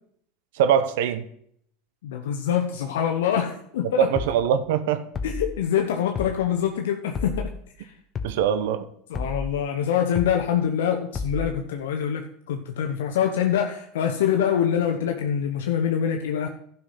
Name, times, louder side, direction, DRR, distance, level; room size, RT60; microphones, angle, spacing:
voice 1, 0.5-1.3 4.0-5.0 8.2-8.9, right 8 dB, 75° right, 0.8 m, -22 dB
voice 2, 2.0-4.1 5.2-7.5 7.8-7.9 9.1-16.5, left 9 dB, 80° left, 0.9 m, -25 dB
sound 1, 4.2-4.4 5.1-5.5 6.2-6.4 7.1-7.5 8.2-8.4 9.1-9.5 10.2-10.4 11.1-11.5, left 3 dB, 30° left, 1.0 m, -31 dB
11.5 x 5.8 x 5.7 m
hypercardioid pair, 105°, 0 cm